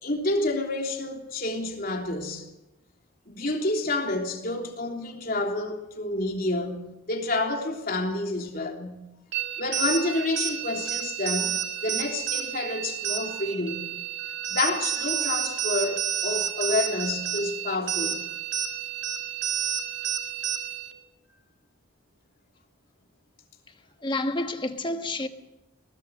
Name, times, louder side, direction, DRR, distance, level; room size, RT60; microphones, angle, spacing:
voice 1, 0.0-2.5 3.3-9.0 9.6-13.9 14.5-18.2, left 2 dB, 45° left, 3.3 m, -29 dB
sound 1, 9.3-20.9, right 9 dB, 55° right, 2.1 m, -30 dB
voice 2, 24.0-25.3, left 2 dB, 25° left, 1.4 m, -29 dB
22.0 x 20.5 x 6.4 m
head